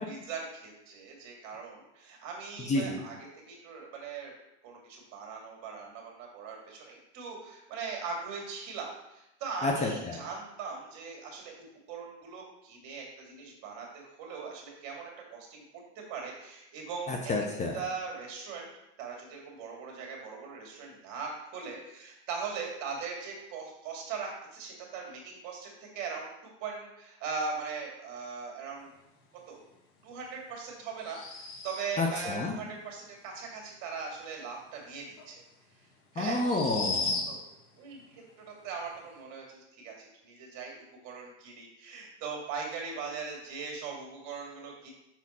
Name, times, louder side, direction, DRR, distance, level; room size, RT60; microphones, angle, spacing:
voice 1, 0.1-3.1 3.5-4.3 4.6-11.5 11.9-15.8 16.1-17.3 17.7-18.7 19.0-26.3 26.6-28.9 29.5-29.6 30.0-35.3 36.1-36.4 37.3-37.4 37.8-40.7 41.0-44.9, right 5 dB, 50° right, 0 dB, 2.2 m, -40 dB
voice 2, 2.7-3.0 9.6-10.2 17.1-17.8 32.0-32.6 36.2-37.2, left 2 dB, 20° left, 1 dB, 0.7 m, -30 dB
sound 1, 31.0-32.1 35.2-35.3 36.3-37.6, left 3 dB, 65° left, 1.5 m, -34 dB
5.9 x 4.3 x 4.2 m, 0.87 s
hypercardioid pair, 110°, 37 cm